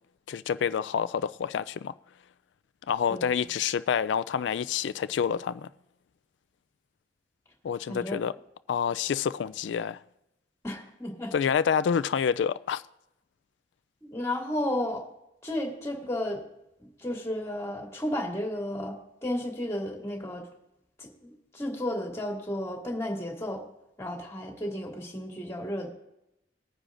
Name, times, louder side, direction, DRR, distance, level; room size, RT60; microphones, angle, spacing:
voice 1, 0.3-1.9 2.9-5.7 7.6-8.3 8.7-10.0 11.3-12.8, left 7 dB, 80° left, 0.3 m, -28 dB
voice 2, 10.6-11.3 14.1-15.1 15.4-16.4 17.0-20.5 21.0-23.6 24.0-25.9, left 1 dB, 15° left, 2.3 m, -33 dB
20.0 x 9.8 x 2.5 m
head